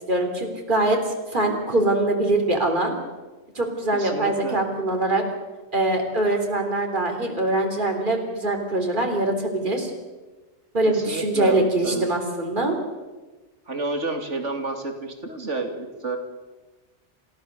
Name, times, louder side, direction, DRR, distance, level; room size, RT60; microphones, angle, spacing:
voice 1, 0.1-2.9 3.6-5.2 5.7-9.9 10.7-12.8, right 2 dB, 45° right, 3 dB, 3.7 m, -23 dB
voice 2, 3.9-4.6 10.8-12.1 13.7-16.2, right 3 dB, 90° right, 5 dB, 3.0 m, -30 dB
28.0 x 16.0 x 6.8 m, 1.2 s
omnidirectional pair, 1.2 m